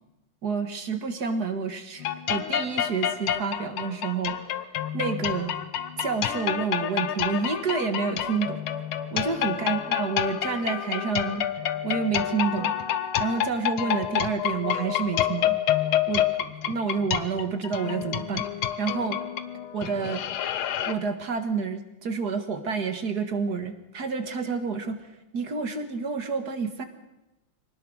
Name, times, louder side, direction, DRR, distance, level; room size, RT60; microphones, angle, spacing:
voice 1, 0.4-4.4 4.9-5.5 6.0-8.6 9.1-11.5 11.8-12.7 13.2-15.6 16.1-18.5 18.8-19.2 19.7-20.2 20.9-25.0 25.3-26.8, right 5 dB, 50° right, 8 dB, 2.1 m, -29 dB
sound 1, 2.0-20.9, left 10 dB, 75° left, 1.8 m, -28 dB
24.5 x 18.5 x 6.3 m, 0.97 s
omnidirectional pair, 2.4 m